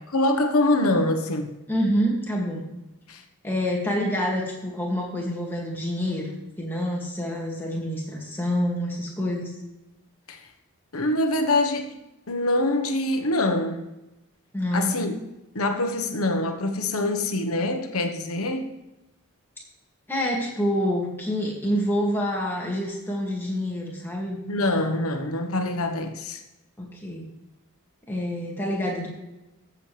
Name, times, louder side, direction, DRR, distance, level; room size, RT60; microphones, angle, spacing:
voice 1, 0.1-1.6 3.1-3.2 10.3-10.5 10.9-12.0 12.3-13.9 14.7-15.2 15.5-18.7 24.5-26.4, left 2 dB, 75° left, 6 dB, 1.2 m, -24 dB
voice 2, 1.7-2.7 3.4-9.5 14.5-14.9 20.1-24.4 26.8-27.2 28.1-29.1, equal, 10° left, -3 dB, 2.2 m, -27 dB
14.5 x 7.4 x 3.4 m, 0.99 s
head